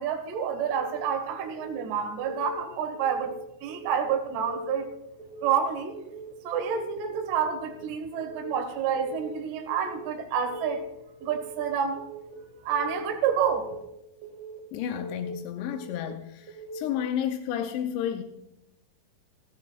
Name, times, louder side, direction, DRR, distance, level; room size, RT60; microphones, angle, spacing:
voice 1, 0.0-3.4 3.6-4.9 5.4-6.0 6.4-10.9 11.2-12.0 12.6-13.7, right 7 dB, 60° right, 5 dB, 2.9 m, -28 dB
Keyboard (musical) / Alarm, 0.7-1.1 1.4-1.8 2.2-2.6 2.9-3.3 3.7-4.1 4.4-4.8 5.2-5.6 5.9-6.3 6.7-7.1 7.4-7.8 8.2-8.6 8.9-9.3 9.7-10.1 10.4-10.8 11.2-11.6 11.9-12.3 12.7-13.1 13.5-13.8 14.2-14.6 15.0-15.3 15.7-16.1 16.5-16.8, right 1 dB, 15° right, 1.5 m, -41 dB
voice 2, 14.7-18.2, left 9 dB, 85° left, 5 dB, 2.9 m, -31 dB
19.0 x 15.5 x 2.4 m, 0.87 s
omnidirectional pair, 4.9 m